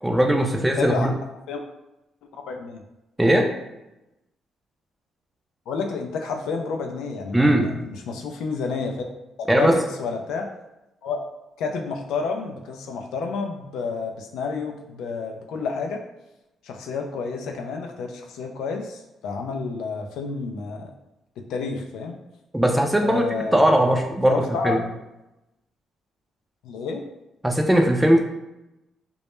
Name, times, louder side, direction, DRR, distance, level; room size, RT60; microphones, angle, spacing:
voice 1, 0.0-1.1 3.2-3.5 7.3-7.8 9.5-9.7 22.5-23.2 23.5-24.8 27.4-28.2, right 1 dB, 10° right, 2 dB, 0.4 m, -19 dB
voice 2, 0.5-1.1 1.5-1.6 2.3-2.8 5.7-9.1 9.4-10.5 11.0-11.2 11.6-16.0 16.6-20.9 21.4-22.1 23.0-23.9 24.3-24.8 26.6-27.0, left 4 dB, 85° left, 3 dB, 0.3 m, -30 dB
2.2 x 2.0 x 3.0 m, 0.95 s
cardioid pair, 90°, 0 cm